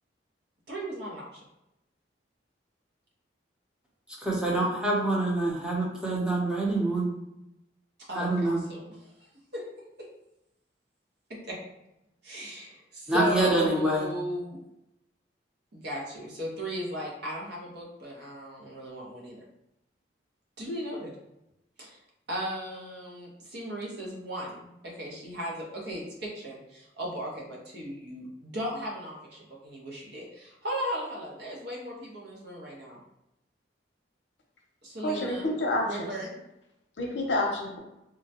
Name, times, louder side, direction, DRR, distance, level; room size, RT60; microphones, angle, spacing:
voice 1, 0.7-1.4 8.1-8.8 9.2-9.6 10.0-10.1 11.5-11.6 12.2-14.6 15.7-19.4 20.6-21.1 21.8-22.0 22.3-33.0 34.8-35.5 35.8-36.3, equal, 65° right, 1.0 m, -36 dB
voice 2, 4.2-7.1 8.1-8.6 13.1-14.0, right 2 dB, 5° right, 0.7 m, -26 dB
voice 3, 35.0-36.1 37.0-37.8, left 1 dB, 70° left, 0.7 m, -28 dB
3.7 x 2.2 x 2.8 m
head